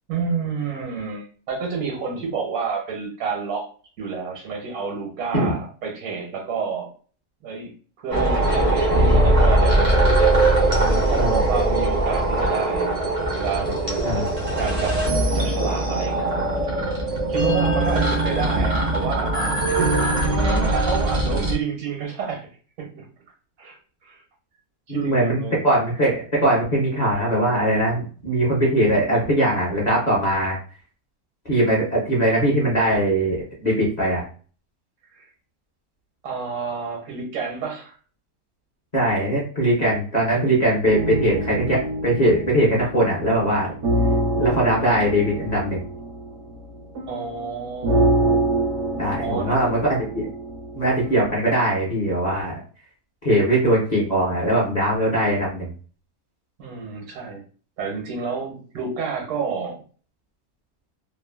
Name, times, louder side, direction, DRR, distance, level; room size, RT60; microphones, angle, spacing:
voice 1, 0.1-3.7 4.0-6.9 7.4-7.7 8.0-10.1 10.8-12.9 13.4-14.2 14.6-15.0 15.3-16.4 17.3-19.3 20.3-22.5 22.8-23.0 23.6-24.2 24.9-25.6 35.1-35.3 36.2-37.9 47.1-48.5 49.2-49.9 56.6-57.4 57.8-59.8, right 5 dB, 80° right, 0 dB, 1.4 m, -29 dB
sound 1, 8.1-21.5, right 2 dB, 40° right, 0.5 m, -20 dB
voice 2, 24.9-30.6 31.5-34.2 38.9-43.7 44.4-45.8 49.0-50.3 50.7-52.6 53.2-55.7, right 1 dB, 35° left, -4 dB, 0.8 m, -21 dB
sound 2, 40.8-51.4, right 1 dB, 65° right, 0.9 m, -26 dB
3.0 x 2.3 x 2.3 m, 0.40 s
omnidirectional pair, 1.6 m